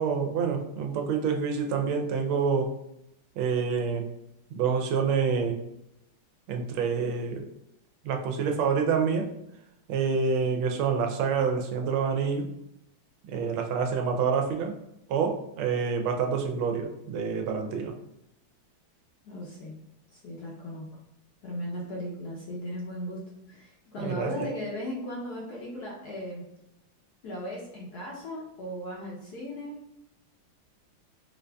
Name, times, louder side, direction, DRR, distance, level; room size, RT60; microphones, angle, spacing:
voice 1, 0.0-2.7 3.4-4.0 4.5-5.6 6.5-7.4 8.0-9.3 9.9-12.5 13.3-14.7 15.1-17.9 24.0-24.5, right 5 dB, 90° right, 3 dB, 1.4 m, -27 dB
voice 2, 19.2-19.7 20.1-20.9 21.4-23.2 23.5-26.4 27.2-29.8, equal, 65° left, -4 dB, 1.0 m, -37 dB
4.9 x 2.6 x 2.2 m, 0.84 s
omnidirectional pair, 2.2 m